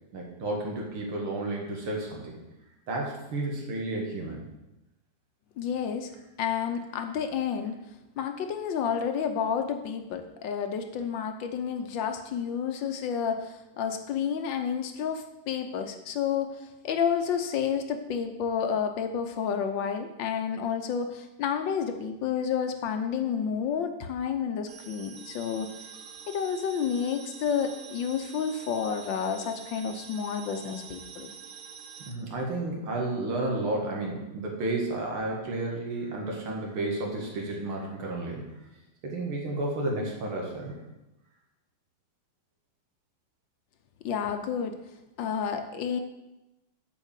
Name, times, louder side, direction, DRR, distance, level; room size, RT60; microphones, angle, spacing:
voice 1, 0.1-2.4 2.9-4.4 32.0-38.4 39.0-40.7, right 2 dB, 90° right, -1 dB, 2.7 m, -32 dB
voice 2, 5.6-6.1 6.4-7.8 8.2-25.7 26.3-31.3 44.0-44.8 45.2-46.0, left 7 dB, 70° left, 7 dB, 1.4 m, -30 dB
sound 1, 24.7-32.1, right 7 dB, 60° right, 0.9 m, -46 dB
8.1 x 4.9 x 7.4 m, 0.97 s
omnidirectional pair, 2.3 m